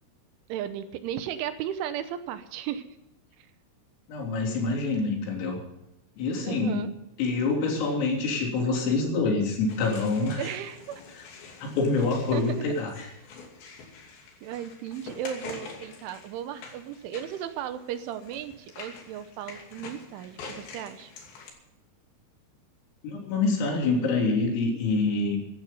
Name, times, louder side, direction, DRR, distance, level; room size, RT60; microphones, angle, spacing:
voice 1, 0.5-2.9 3.4-3.5 6.4-6.9 10.4-10.8 12.3-12.6 14.4-21.1, right 10 dB, 80° right, 10 dB, 3.2 m, -35 dB
voice 2, 4.1-5.6 6.2-6.9 7.2-10.4 11.6-12.9 23.0-25.4, left 3 dB, 85° left, 0 dB, 6.1 m, -26 dB
sound 1, 9.7-21.5, left 4 dB, 60° left, 4.6 m, -46 dB
15.5 x 13.0 x 5.4 m, 0.92 s
omnidirectional pair, 5.8 m